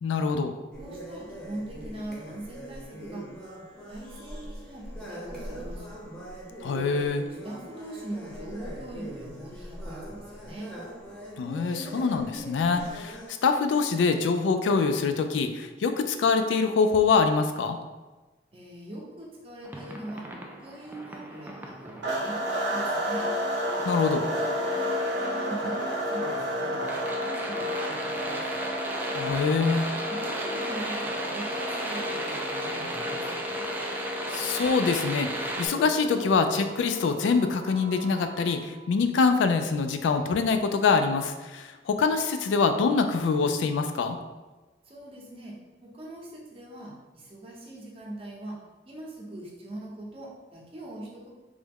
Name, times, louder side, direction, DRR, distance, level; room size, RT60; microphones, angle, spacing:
voice 1, 0.0-0.6 6.6-7.2 11.4-17.8 23.8-24.2 29.1-29.9 34.3-35.3 35.6-44.2, left 4 dB, 80° left, 8 dB, 0.3 m, -24 dB
sound 1, 0.7-13.3, equal, 5° left, 0.7 m, -41 dB
voice 2, 0.8-3.3 3.9-6.0 7.4-10.8 18.5-20.3 20.6-23.3 24.1-24.5 24.8-28.6 30.1-33.7 44.9-51.3, right 1 dB, 30° right, -3 dB, 0.7 m, -42 dB
sound 2, 19.6-35.7, right 1 dB, 10° right, 0.3 m, -37 dB
sound 3, 22.0-38.7, equal, 70° right, 0.7 m, -32 dB
3.4 x 2.0 x 3.4 m, 1.2 s
head